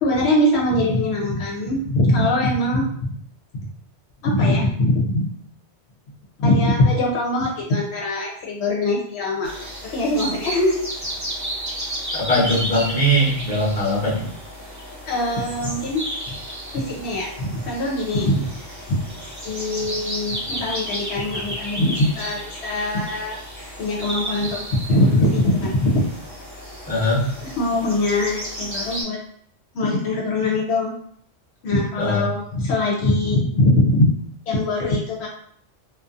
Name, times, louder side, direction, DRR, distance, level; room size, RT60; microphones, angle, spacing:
voice 1, 0.0-3.1 4.2-5.3 6.4-9.5 9.9-10.8 15.1-16.4 16.7-18.6 18.9-19.0 19.4-23.4 23.8-26.0 27.4-29.2 29.7-30.9 31.6-34.1 34.5-35.3, left 1 dB, 70° left, -2 dB, 0.8 m, -22 dB
sound 1, 9.4-29.0, equal, 20° right, 0.5 m, -33 dB
voice 2, 12.1-14.2 26.9-27.3 32.0-32.2, equal, 10° left, -7 dB, 0.7 m, -20 dB
2.5 x 2.3 x 2.4 m, 0.64 s
omnidirectional pair, 1.2 m